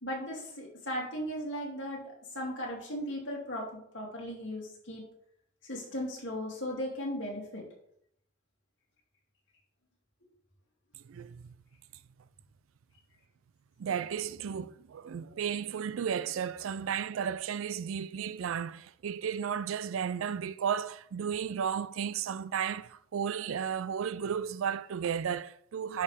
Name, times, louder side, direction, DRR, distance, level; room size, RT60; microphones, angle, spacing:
voice 1, 0.0-5.0 5.6-7.7, equal, 60° left, 2.9 m, -37 dB
voice 2, 11.1-11.5 13.8-26.0, right 7 dB, 85° right, 0.4 m, -34 dB
10.5 x 5.3 x 3.5 m
head